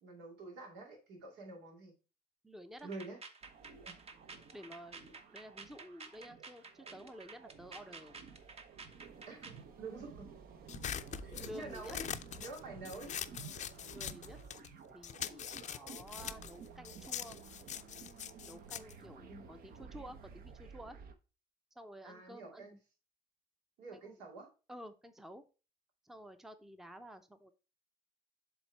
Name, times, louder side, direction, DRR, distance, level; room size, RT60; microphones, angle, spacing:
voice 1, 0.0-1.9 2.8-3.2 3.8-4.0 9.3-10.3 11.2-12.1 12.4-13.1 19.3-19.5 22.0-22.8 23.8-24.5, right 3 dB, 90° right, 1 dB, 2.3 m, -48 dB
voice 2, 2.4-2.9 4.5-8.2 11.4-12.0 13.9-14.4 14.9-17.4 18.5-21.0 21.8-22.7 23.9-24.2 24.7-25.4 26.1-27.5, equal, ahead, 9 dB, 0.6 m, -51 dB
sound 1, 2.8-9.6, right 4 dB, 35° right, 1.0 m, -51 dB
sound 2, 3.4-21.1, right 6 dB, 60° right, 0.8 m, -53 dB
sound 3, 10.7-14.7 15.0-19.8, left 10 dB, 45° left, 0.5 m, -43 dB
7.1 x 3.6 x 4.6 m, 0.33 s
cardioid pair, 110°, 17 cm